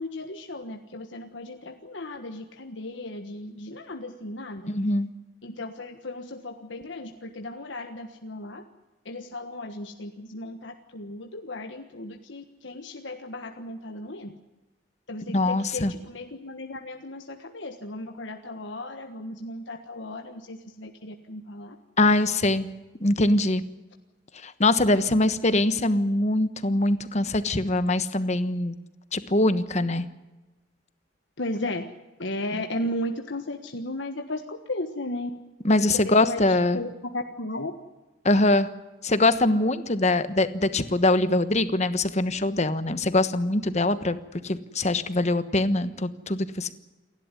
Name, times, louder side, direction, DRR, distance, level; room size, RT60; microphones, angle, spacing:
voice 1, 0.0-4.7 5.4-8.6 9.0-14.3 15.1-21.8 31.4-31.9 32.2-35.3 35.9-37.7, left 1 dB, 70° left, 5 dB, 1.5 m, -35 dB
voice 2, 4.7-5.1 15.3-15.9 22.0-22.7 23.0-23.6 24.4-28.8 29.1-30.1 35.6-36.8 38.2-38.7 39.0-44.2 44.4-46.7, left 2 dB, 35° left, 12 dB, 1.3 m, -23 dB
29.0 x 12.0 x 9.8 m, 1.1 s
head